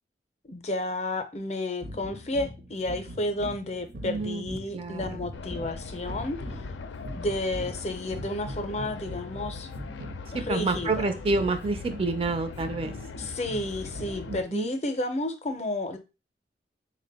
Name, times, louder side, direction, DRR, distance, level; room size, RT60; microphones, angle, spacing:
voice 1, 0.5-6.6 7.1-9.7 10.3-11.1 13.2-16.0, left 2 dB, 40° left, 8 dB, 0.5 m, -31 dB
sound 1, 1.8-14.5, equal, 65° right, 0.7 m, -42 dB
voice 2, 4.0-5.1 10.3-12.9 14.3-14.7, right 3 dB, 30° right, 8 dB, 0.4 m, -28 dB
sound 2, 5.3-14.4, left 4 dB, 85° left, 0.4 m, -41 dB
4.0 x 2.1 x 3.9 m, 0.28 s
head